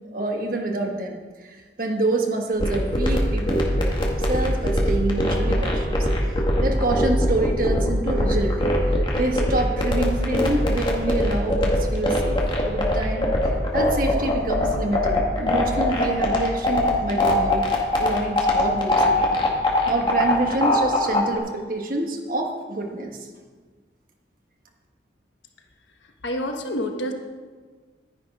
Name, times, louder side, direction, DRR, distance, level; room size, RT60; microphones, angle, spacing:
voice 1, 0.1-1.2 1.4-6.0 6.6-13.3 13.7-17.7 18.0-19.4 19.9-23.2, right 2 dB, 50° right, 2 dB, 1.5 m, -27 dB
sound 1, 2.6-21.4, left 1 dB, 25° left, 1.7 m, -21 dB
voice 2, 26.2-27.1, equal, 85° left, 4 dB, 1.2 m, -27 dB
11.0 x 9.7 x 5.3 m, 1.4 s
head